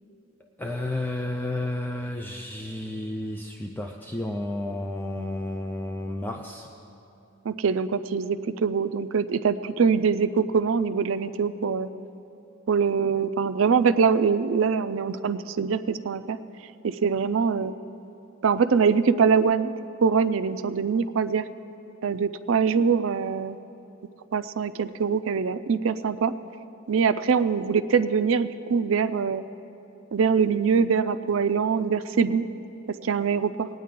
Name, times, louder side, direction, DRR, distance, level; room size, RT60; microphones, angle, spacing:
voice 1, 0.4-6.7, left 1 dB, 10° left, 2 dB, 0.4 m, -32 dB
voice 2, 7.4-11.9 12.7-16.4 16.8-17.7 18.4-19.7 20.0-21.4 22.0-23.6 24.3-26.3 26.9-29.4 30.1-32.4 33.0-33.7, right 6 dB, 75° right, 12 dB, 0.4 m, -23 dB
19.5 x 9.4 x 3.7 m, 2.9 s
head